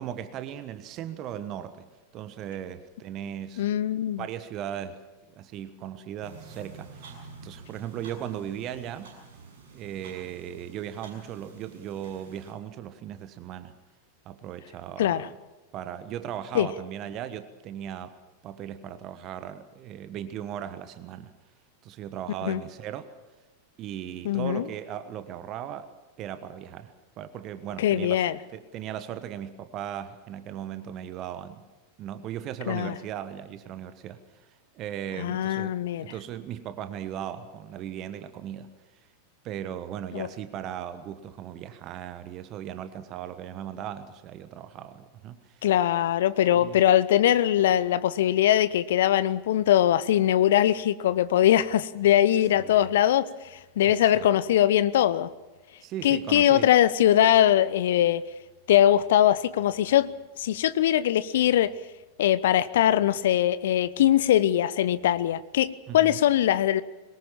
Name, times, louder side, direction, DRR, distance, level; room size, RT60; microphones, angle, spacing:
voice 1, 0.0-1.9 2.1-3.7 4.2-5.0 5.4-9.1 9.7-13.8 14.2-15.3 15.7-18.1 18.4-21.3 21.8-23.1 23.8-25.9 26.2-28.3 28.5-31.6 32.0-34.5 34.7-38.7 39.4-45.7 46.5-46.9 52.6-52.9 53.8-54.3 55.8-56.7 65.9-66.2, right 10 dB, 35° right, 11 dB, 1.3 m, -37 dB
voice 2, 3.6-4.2 15.0-15.3 16.5-16.7 22.4-22.6 24.2-24.6 27.8-28.3 32.7-32.9 35.2-36.1 40.1-40.3 45.6-53.3 53.8-55.3 56.0-58.2 58.7-60.1 60.4-61.7 62.2-66.8, left 11 dB, 55° left, 17 dB, 0.7 m, -21 dB
sound 1, 6.2-12.5, right 4 dB, 55° right, 7.2 m, -48 dB
22.5 x 20.0 x 7.3 m, 1.2 s
figure-of-eight pair, 90°, 0 cm